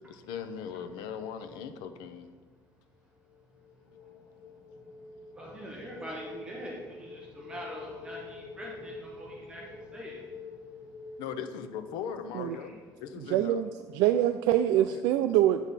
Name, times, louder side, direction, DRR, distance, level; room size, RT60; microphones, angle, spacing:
voice 1, 0.0-2.3 11.2-12.7 13.0-13.6 14.7-15.0, left 7 dB, 70° left, 9 dB, 0.7 m, -39 dB
sound 1, 3.3-12.2, left 4 dB, 55° left, 1.1 m, -47 dB
voice 2, 5.4-10.2, equal, 15° right, -3 dB, 1.0 m, -43 dB
voice 3, 13.2-15.6, right 12 dB, 75° right, 8 dB, 0.4 m, -25 dB
9.8 x 7.3 x 4.1 m, 1.5 s
cardioid pair, 175°, 7 cm